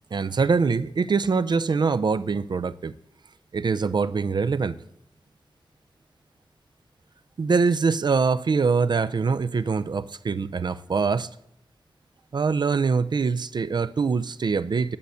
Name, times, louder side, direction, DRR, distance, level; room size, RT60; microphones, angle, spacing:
voice 1, 0.1-2.9 3.5-4.8 7.4-11.3 12.3-15.0, right 5 dB, 55° right, 0.4 m, -23 dB
10.5 x 6.4 x 6.8 m
wide cardioid pair, 85°, 9 cm